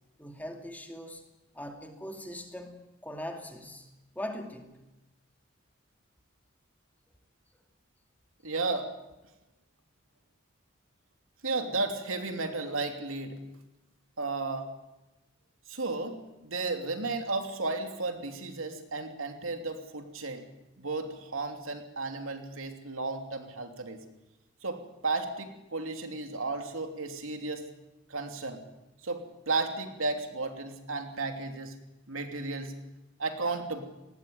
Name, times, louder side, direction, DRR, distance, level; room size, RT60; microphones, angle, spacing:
voice 1, 0.2-1.2 1.5-3.9 4.1-4.8, left 1 dB, 10° left, 4 dB, 2.4 m, -40 dB
voice 2, 8.4-8.9 11.4-13.4 14.2-14.7 15.7-20.4 20.8-24.0 24.6-27.7 28.1-28.6 29.0-31.7 32.1-32.7 33.2-33.8, right 3 dB, 85° right, 5 dB, 3.0 m, -34 dB
19.0 x 18.5 x 9.5 m, 1.0 s
head